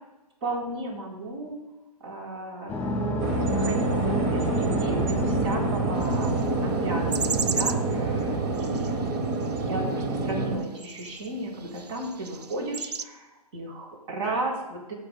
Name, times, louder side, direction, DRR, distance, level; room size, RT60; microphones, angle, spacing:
voice 1, 0.4-1.6 2.0-9.1 9.6-14.9, right 2 dB, 50° right, -1 dB, 3.8 m, -34 dB
sound 1, 2.7-10.1, equal, 10° left, 1.5 m, -32 dB
sound 2, 3.2-10.6, right 3 dB, 30° right, 1.0 m, -27 dB
sound 3, 6.0-13.1, right 6 dB, 85° right, 0.5 m, -36 dB
16.5 x 8.4 x 2.3 m, 1.0 s
figure-of-eight pair, 125°, 20 cm